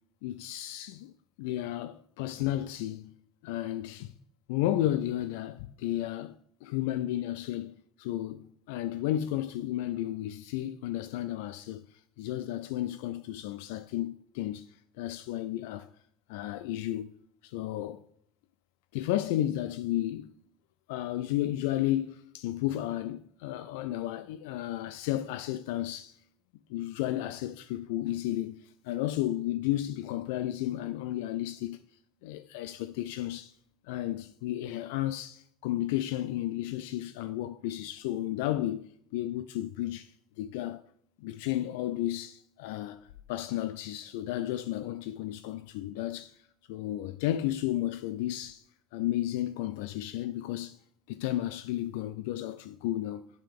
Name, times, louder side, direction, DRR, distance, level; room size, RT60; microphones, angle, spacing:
voice 1, 0.2-1.1 1.4-3.1 3.4-4.1 4.5-15.9 16.3-17.1 17.4-18.0 18.9-20.3 20.9-26.2 26.7-31.8 32.2-33.5 33.8-40.8 41.2-46.4 46.7-48.6 48.9-50.8 51.1-53.2, left 13 dB, 75° left, 0.3 m, -33 dB
7.6 x 6.9 x 3.5 m
supercardioid pair, 100°, 0 cm